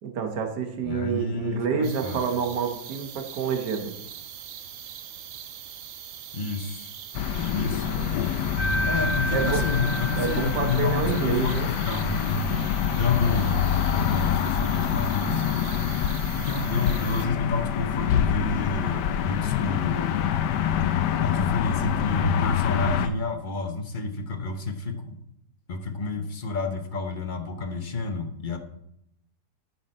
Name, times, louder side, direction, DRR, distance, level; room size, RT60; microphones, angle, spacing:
voice 1, 0.0-4.0 8.0-8.2 9.3-9.6 10.2-11.8, right 6 dB, 90° right, 4 dB, 1.7 m, -28 dB
voice 2, 0.8-2.2 6.3-6.9 7.5-7.9 8.8-12.5 13.0-13.6 13.9-15.8 16.4-20.3 21.2-25.2 25.7-28.6, left 3 dB, 35° left, 6 dB, 0.9 m, -29 dB
sound 1, 1.8-17.3, right 9 dB, 60° right, 0.9 m, -41 dB
sound 2, 7.1-23.1, left 9 dB, 90° left, 1.2 m, -26 dB
sound 3, 8.6-11.4, equal, 5° right, 2.3 m, -30 dB
13.5 x 6.0 x 4.3 m, 0.78 s
omnidirectional pair, 1.7 m